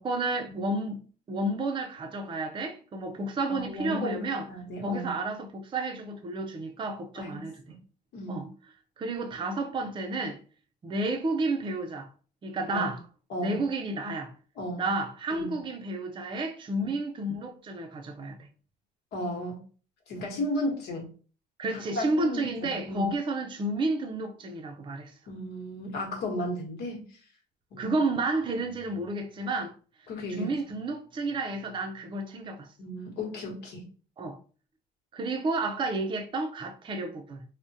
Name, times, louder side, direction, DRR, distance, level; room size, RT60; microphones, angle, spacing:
voice 1, 0.0-4.5 4.8-7.8 8.3-8.5 9.0-10.4 10.8-12.1 12.4-13.0 13.4-14.3 14.8-18.5 21.6-25.1 27.8-29.7 30.3-32.7 34.2-34.4 35.1-37.4, right 2 dB, 30° right, 0.5 m, -31 dB
voice 2, 3.5-5.2 7.1-7.4 8.1-8.4 12.7-12.9 13.3-13.6 14.6-14.9 15.3-15.5 19.1-19.6 20.1-21.1 21.7-23.1 25.3-27.0 27.7-28.0 30.1-30.5 32.8-33.8, left 1 dB, 75° left, 1.1 m, -34 dB
3.4 x 2.1 x 2.6 m
cardioid pair, 110°, 17 cm